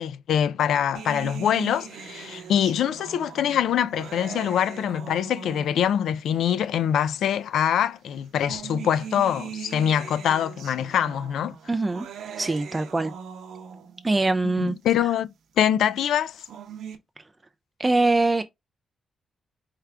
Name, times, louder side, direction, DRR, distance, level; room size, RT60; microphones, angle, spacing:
voice 1, 0.0-11.6 14.6-15.3 15.6-16.4, left 9 dB, 85° left, 0.3 m, -24 dB
sound 1, 0.9-6.0 7.0-7.1 8.1-14.0 16.2-16.9, right 7 dB, 80° right, 0.8 m, -40 dB
voice 2, 11.7-12.1 12.4-13.1 14.0-14.8 17.8-18.4, right 2 dB, 20° right, 0.3 m, -23 dB
4.6 x 2.4 x 3.3 m
cardioid pair, 105°, 0 cm